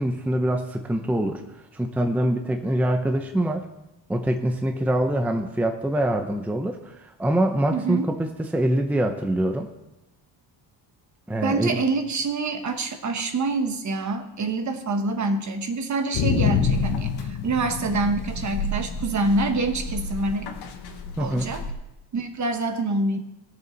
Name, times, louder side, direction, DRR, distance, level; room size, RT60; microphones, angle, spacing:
voice 1, 0.0-1.4 1.7-3.6 4.1-9.7 11.3-11.8 21.2-21.5, right 1 dB, 5° right, 5 dB, 0.6 m, -24 dB
voice 2, 7.7-8.1 11.4-20.6 21.2-21.6 22.1-23.2, right 3 dB, 40° right, 7 dB, 1.1 m, -26 dB
sound 1, 16.1-21.7, left 5 dB, 65° left, 1.4 m, -28 dB
18.5 x 6.8 x 4.0 m, 0.93 s
cardioid pair, 150°, 43 cm